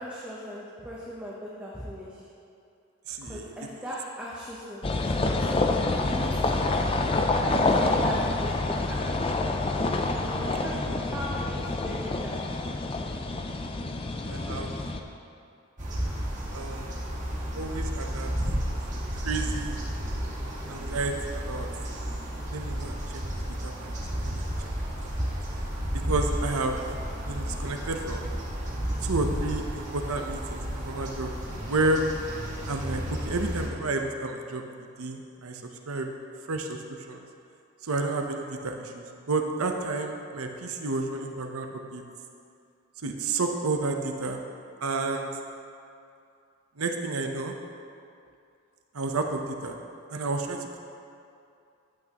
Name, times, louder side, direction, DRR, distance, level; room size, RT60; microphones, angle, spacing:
voice 1, 0.0-2.3 3.2-9.0 10.0-12.4, equal, 5° right, -6 dB, 0.8 m, -39 dB
voice 2, 3.1-3.5 10.7-11.0 14.2-14.7 16.5-16.9 17.5-18.3 19.2-19.8 20.7-21.7 22.5-24.7 25.9-26.8 27.3-28.3 29.0-31.3 31.7-32.0 32.7-35.6 35.9-36.1 36.5-37.2 37.8-42.0 43.0-44.4 44.8-45.3 46.8-47.5 48.9-49.8 50.1-50.8, right 3 dB, 90° right, 3 dB, 0.8 m, -31 dB
sound 1, 4.8-15.0, left 2 dB, 25° left, 0.4 m, -27 dB
sound 2, 15.8-33.7, equal, 35° right, 1.4 m, -32 dB
11.5 x 8.5 x 3.0 m, 2.5 s
head